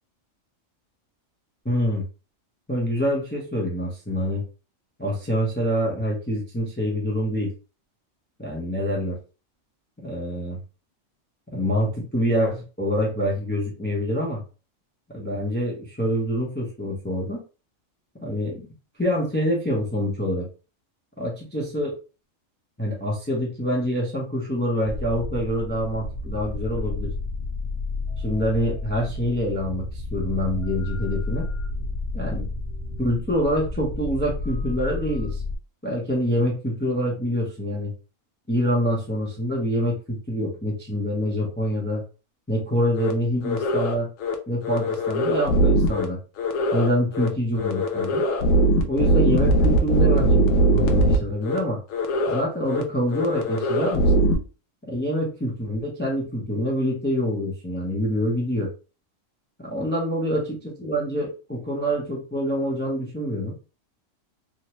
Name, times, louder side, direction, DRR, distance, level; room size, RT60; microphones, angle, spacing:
voice 1, 1.6-2.0 2.7-4.4 5.0-7.5 8.4-9.2 10.0-10.6 11.5-14.4 15.1-17.4 18.2-18.6 19.0-20.5 21.2-21.9 22.8-27.1 28.2-31.5 32.1-32.5 33.0-35.4 35.8-37.9 38.5-42.0 42.5-44.1 44.5-46.2 46.7-48.2 48.8-51.8 52.3-54.2 54.9-58.7 59.6-63.6, equal, 10° left, -2 dB, 0.6 m, -26 dB
sound 1, 24.8-35.6, left 2 dB, 50° left, 1.2 m, -31 dB
sound 2, 43.0-43.1 43.4-43.9 44.2-44.3 44.6-46.0 46.4-46.9 47.1-47.3 47.6-51.2 51.4-51.6 51.9-52.4 52.7-52.8 53.1-54.3, right 1 dB, 80° left, 1.0 m, -21 dB
3.5 x 2.1 x 2.9 m, 0.34 s
omnidirectional pair, 1.4 m